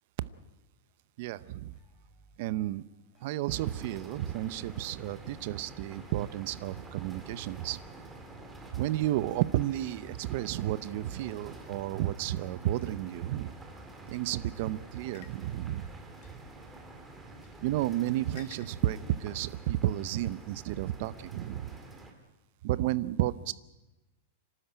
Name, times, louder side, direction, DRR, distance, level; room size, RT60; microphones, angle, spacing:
voice 1, 1.2-1.8 2.4-2.8 3.2-7.8 8.7-13.5 14.1-15.9 17.6-21.7 22.6-23.5, right 14 dB, 45° right, 17 dB, 0.7 m, -32 dB
sound 1, 1.7-3.9 4.2-6.7 7.0-12.2, equal, 15° left, 5.1 m, -62 dB
sound 2, 3.5-22.1, right 2 dB, 5° right, 2.1 m, -48 dB
sound 3, 14.1-14.2 15.1-15.4 16.2-16.4 17.4-17.6 18.4-18.7, left 11 dB, 40° left, 1.6 m, -52 dB
28.0 x 12.5 x 9.0 m, 1.0 s
supercardioid pair, 170°, 0 cm